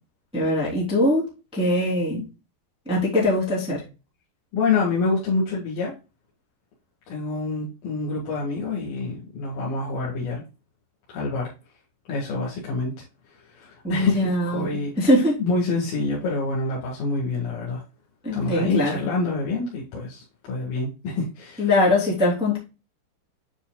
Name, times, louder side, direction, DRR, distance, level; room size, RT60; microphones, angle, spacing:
voice 1, 0.3-1.2 1.5-2.2 2.9-3.8 13.8-15.4 18.2-19.1 21.6-22.6, left 1 dB, ahead, 2.4 m, -22 dB
voice 2, 4.5-5.9 7.1-10.4 11.1-11.5 12.1-13.0 13.5-15.1 15.4-17.8 18.3-21.7, left 3 dB, 60° left, 3.7 m, -27 dB
9.7 x 5.2 x 2.3 m
omnidirectional pair, 5.0 m